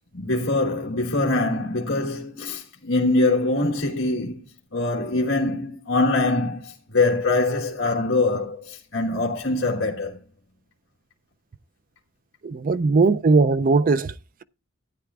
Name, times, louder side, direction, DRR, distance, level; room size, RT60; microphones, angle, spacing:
voice 1, 0.1-4.5 4.7-10.2, left 2 dB, 65° left, 1.5 m, -23 dB
voice 2, 12.4-14.1, right 4 dB, 45° right, 0.4 m, -19 dB
14.5 x 9.6 x 2.4 m
head